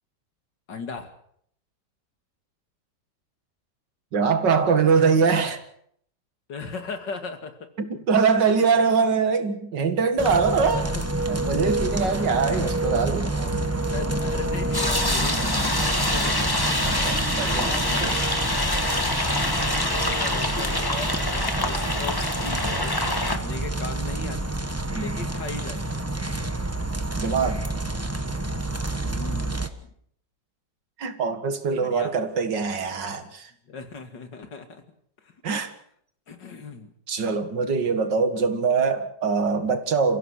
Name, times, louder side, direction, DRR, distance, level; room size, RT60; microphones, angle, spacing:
voice 1, 0.7-1.1 6.5-7.6 8.6-8.7 10.7-11.0 12.0-12.3 13.9-16.8 17.0-18.4 19.4-26.1 28.1-28.3 29.0-29.9 31.7-32.1 33.6-34.8 35.2-35.4 36.3-36.9, left 4 dB, 85° left, 7 dB, 3.0 m, -38 dB
voice 2, 4.1-5.6 7.8-10.9 11.3-13.7 16.8-18.1 20.6-20.7 24.9-25.1 27.2-27.7 31.0-33.5 35.4-35.7 37.1-40.2, right 5 dB, 90° right, 9 dB, 2.6 m, -23 dB
sound 1, 10.2-29.7, right 2 dB, 10° right, 1.2 m, -28 dB
sound 2, 14.7-23.4, left 2 dB, 15° left, 1.5 m, -26 dB
29.5 x 16.0 x 6.5 m, 0.67 s
omnidirectional pair, 1.9 m